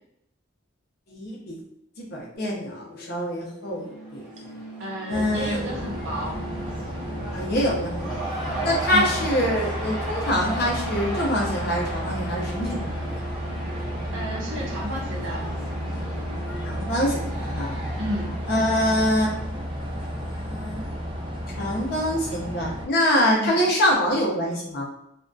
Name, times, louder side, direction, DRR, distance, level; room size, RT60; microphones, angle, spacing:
voice 1, 1.1-1.6 2.0-4.2 5.1-5.6 7.3-8.2 8.6-13.2 16.6-17.8 18.5-19.3 20.1-20.8 21.6-24.9, equal, 50° left, -2 dB, 0.5 m, -25 dB
sound 1, 2.3-16.7, equal, 90° left, 0.7 m, -42 dB
Cheering / Crowd, 3.7-20.6, right 2 dB, 5° right, 1.1 m, -37 dB
voice 2, 4.8-6.4 8.9-9.1 14.1-15.4 17.9-18.4 23.4-23.6, equal, 65° right, -4 dB, 0.7 m, -31 dB
sound 2, 5.1-22.9, equal, 25° right, 0.3 m, -32 dB
2.6 x 2.1 x 2.3 m, 0.79 s
head